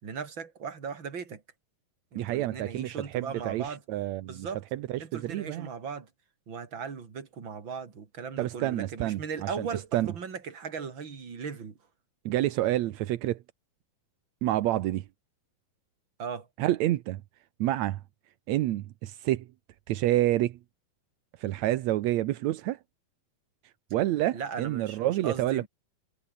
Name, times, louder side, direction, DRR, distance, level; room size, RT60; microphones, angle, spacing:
voice 1, 0.0-1.4 2.1-3.8 4.2-4.6 5.0-6.1 6.5-11.7 16.2-16.5 24.3-25.7, right 6 dB, 35° right, 3.2 m, -38 dB
voice 2, 2.1-5.7 8.4-9.7 9.9-10.1 12.2-13.4 14.4-15.0 16.6-17.2 17.6-18.0 18.5-19.5 19.9-20.6 21.4-22.8 23.9-25.7, right 14 dB, 75° right, 1.7 m, -28 dB
omnidirectional pair, 4.2 m